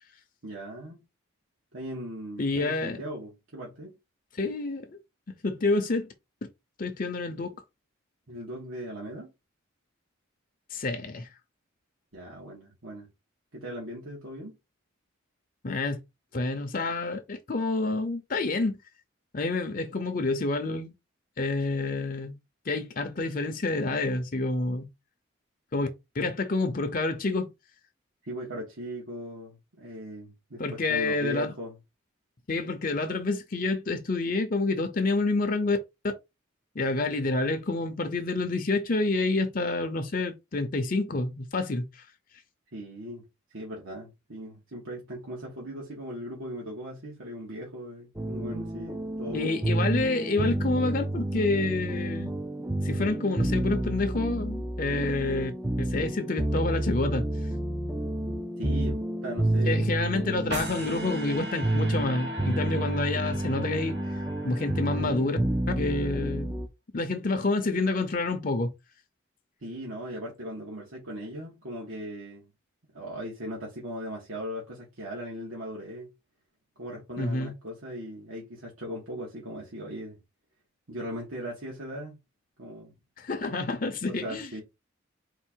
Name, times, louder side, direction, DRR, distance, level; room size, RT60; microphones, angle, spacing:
voice 1, 0.4-1.0 1.7-3.9 8.3-9.3 12.1-13.1 13.5-14.5 28.2-31.7 42.7-43.2 43.5-49.6 58.6-59.8 69.6-72.5 72.9-76.1 76.8-80.2 80.9-82.2 82.6-82.9 84.1-84.6, equal, 80° right, 1.6 m, -38 dB
voice 2, 2.4-3.0 4.3-4.9 5.3-6.1 6.8-7.6 10.7-11.3 15.6-16.0 16.3-18.8 19.3-20.9 21.4-22.4 22.7-24.9 25.7-25.9 26.1-27.5 30.6-31.5 32.5-35.8 36.0-36.1 36.7-42.1 49.3-52.3 52.8-55.5 55.8-57.3 59.6-64.0 64.4-65.4 65.7-66.6 66.9-68.7 77.2-77.5 83.2-84.5, left 3 dB, 40° left, 0.6 m, -28 dB
sound 1, 48.2-66.7, right 1 dB, 10° right, 0.4 m, -30 dB
sound 2, 60.5-65.7, right 1 dB, 55° right, 1.1 m, -40 dB
4.5 x 2.5 x 4.4 m
head